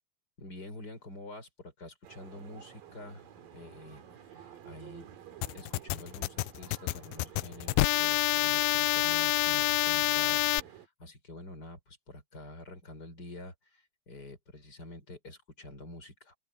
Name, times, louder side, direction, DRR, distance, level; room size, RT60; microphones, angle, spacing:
voice 1, 0.4-3.3 3.5-5.2 5.5-16.4, left 1 dB, 25° left, 6.7 m, -48 dB
sound 1, 2.0-10.9, right 9 dB, 65° right, 3.6 m, -52 dB
sound 2, 5.4-10.6, left 18 dB, 80° left, 2.4 m, -27 dB
open air
omnidirectional pair, 4.4 m